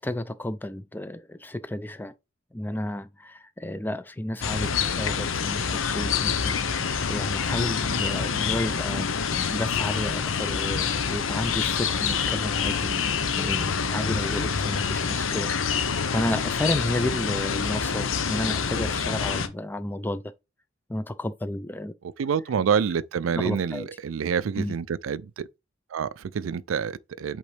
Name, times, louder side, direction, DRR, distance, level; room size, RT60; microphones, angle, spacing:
voice 1, 0.0-2.1 2.5-4.7 5.0-13.0 13.4-20.2 20.9-21.9 23.3-23.9 24.6-24.7, left 1 dB, 10° left, 0.4 m, -32 dB
sound 1, 4.4-19.5, left 6 dB, 80° left, 0.7 m, -27 dB
voice 2, 22.2-25.5 25.9-27.4, right 7 dB, 90° right, 0.4 m, -27 dB
8.1 x 3.7 x 3.3 m
head